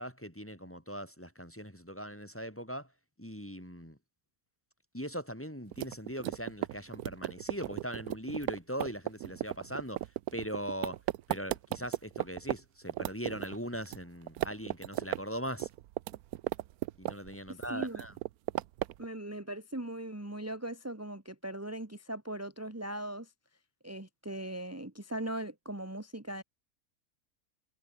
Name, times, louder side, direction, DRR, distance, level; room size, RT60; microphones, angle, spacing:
voice 1, 0.0-2.9 3.2-4.0 4.9-11.0 11.3-15.7 17.0-18.2, equal, 10° left, 2.4 m, -40 dB
sound 1, 5.7-12.6 12.9-14.0 14.3-15.2 15.5-17.3 17.6-19.0, right 14 dB, 80° right, 1.1 m, -35 dB
voice 2, 17.7-18.0 19.0-23.3 23.8-26.4, right 1 dB, 10° right, 1.9 m, -39 dB
omnidirectional pair, 1.6 m